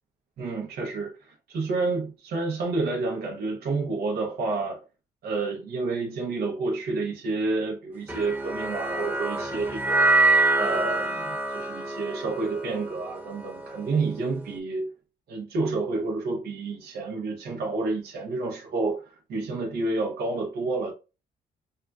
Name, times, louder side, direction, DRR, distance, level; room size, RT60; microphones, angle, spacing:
voice 1, 0.4-4.8 5.2-10.1 10.6-14.9 15.3-20.9, right 3 dB, 75° right, 0.9 m, -29 dB
sound 1, 8.1-14.5, right 2 dB, 10° right, 1.0 m, -26 dB
6.6 x 2.3 x 2.3 m
cardioid pair, 90°, 16 cm